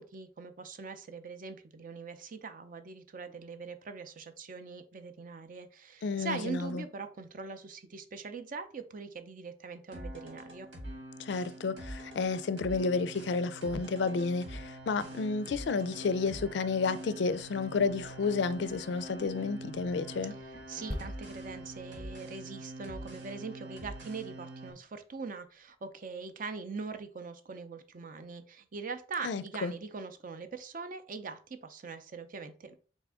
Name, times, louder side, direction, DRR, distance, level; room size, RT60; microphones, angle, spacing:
voice 1, 0.0-10.7 20.5-32.8, right 4 dB, 45° right, 0.5 m, -42 dB
voice 2, 6.0-6.8 11.2-20.3 29.2-29.7, left 4 dB, 65° left, 0.4 m, -31 dB
sound 1, 9.9-24.7, right 1 dB, 85° right, 1.7 m, -44 dB
sound 2, 20.9-24.5 24.8-25.0, equal, 5° left, 0.5 m, -45 dB
4.2 x 3.5 x 3.5 m
head